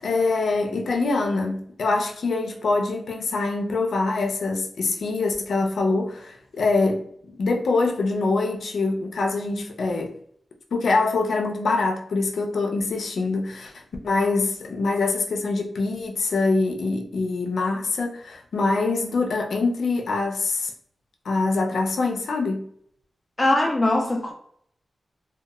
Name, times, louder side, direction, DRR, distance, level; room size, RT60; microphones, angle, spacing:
voice 1, 0.0-7.0 7.4-10.1 10.7-20.7 21.2-22.7, left 3 dB, 85° left, 0.5 m, -24 dB
voice 2, 23.4-24.3, left 1 dB, 20° left, 0.4 m, -21 dB
2.8 x 2.2 x 2.3 m
wide cardioid pair, 95°, 0 cm